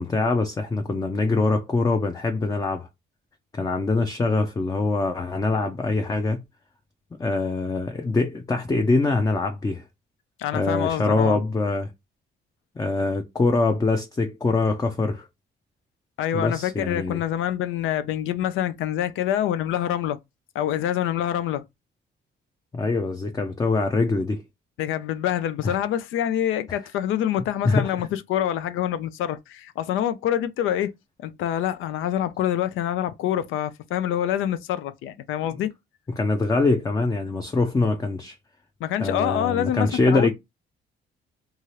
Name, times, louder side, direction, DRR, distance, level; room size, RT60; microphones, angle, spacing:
voice 1, 0.0-2.9 3.5-6.4 7.2-9.8 10.5-11.9 12.8-15.3 16.3-17.2 22.7-24.4 25.6-25.8 27.6-28.0 36.2-38.4 39.0-40.3, left 3 dB, 20° left, 0.4 m, -23 dB
voice 2, 10.4-11.4 16.2-20.2 20.5-21.6 24.8-30.9 31.2-35.7 38.8-40.3, left 11 dB, 85° left, 0.4 m, -26 dB
2.7 x 2.4 x 3.1 m
cardioid pair, 90°, 20 cm